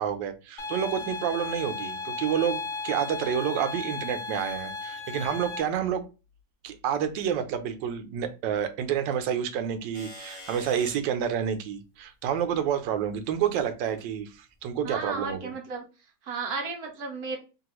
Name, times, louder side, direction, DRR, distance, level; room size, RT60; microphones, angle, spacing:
voice 1, 0.0-6.0 6.6-15.5, right 8 dB, 80° right, 9 dB, 1.2 m, -29 dB
sound 1, 0.6-5.6, left 3 dB, 65° left, 0.8 m, -35 dB
sound 2, 9.9-11.0 12.4-12.5 13.8-14.1 15.0-15.1, left 1 dB, 25° left, 0.6 m, -44 dB
voice 2, 14.8-15.9 16.2-17.4, right 4 dB, 65° right, 2 dB, 1.1 m, -33 dB
3.2 x 2.2 x 2.9 m, 0.30 s
omnidirectional pair, 1.9 m